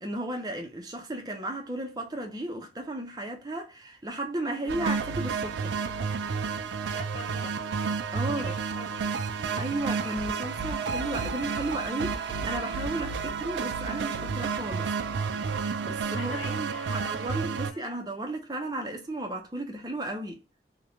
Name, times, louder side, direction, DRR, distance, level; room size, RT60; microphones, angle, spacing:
voice 1, 0.0-5.8 8.1-8.5 9.6-14.9 15.8-20.4, right 1 dB, 20° right, 0.5 m, -34 dB
voice 2, 4.4-4.7 6.9-7.5 8.3-9.1 15.8-15.9 16.1-17.8, left 2 dB, 90° left, 0.8 m, -44 dB
sound 1, 4.7-17.7, right 5 dB, 85° right, 0.3 m, -31 dB
3.0 x 2.2 x 2.4 m
head